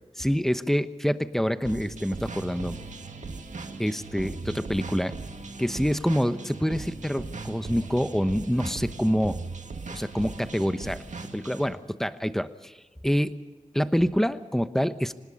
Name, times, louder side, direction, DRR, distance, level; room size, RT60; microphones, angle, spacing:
voice 1, 0.2-2.8 3.8-5.1 5.6-9.4 9.9-11.0 11.3-12.7 13.0-13.4 13.7-15.1, equal, 5° left, 11 dB, 1.0 m, -26 dB
sound 1, 1.6-11.7, right 3 dB, 75° right, 1.9 m, -38 dB
25.5 x 19.5 x 5.4 m, 1.3 s
wide cardioid pair, 75°, 13 cm